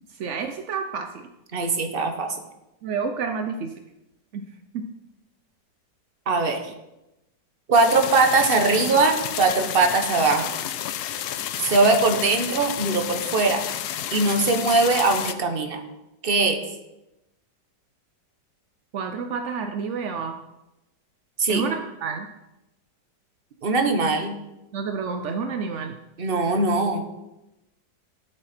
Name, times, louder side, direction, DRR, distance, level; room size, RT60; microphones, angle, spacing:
voice 1, 0.1-1.3 2.8-3.7 4.3-4.5 4.7-4.9 18.9-20.4 21.5-22.3 24.7-25.9, right 5 dB, 70° right, 6 dB, 0.7 m, -29 dB
voice 2, 1.5-2.4 6.3-6.6 7.7-10.5 11.6-13.6 14.1-15.8 16.2-16.6 21.4-21.6 23.6-24.3 26.2-27.0, right 3 dB, 35° right, 5 dB, 1.1 m, -21 dB
sound 1, 7.7-15.3, left 11 dB, 70° left, 1.1 m, -31 dB
12.5 x 6.9 x 4.3 m, 0.94 s
omnidirectional pair, 1.9 m